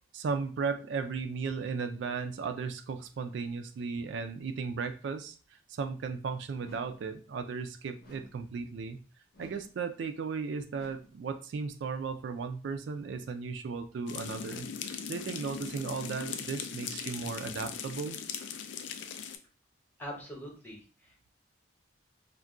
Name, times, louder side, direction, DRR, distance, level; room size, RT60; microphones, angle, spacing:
voice 1, 0.1-5.4 5.7-9.0 9.4-14.7 15.1-18.2, right 5 dB, 75° right, 8 dB, 0.3 m, -35 dB
sound 1, 6.6-7.2 8.0-8.5 9.3-9.9 10.7-11.3, equal, 55° left, 0.7 m, -55 dB
sound 2, 14.1-19.4, left 7 dB, 80° left, 0.3 m, -39 dB
voice 2, 20.0-21.3, equal, 10° left, -3 dB, 0.8 m, -44 dB
2.4 x 2.2 x 3.6 m, 0.37 s
head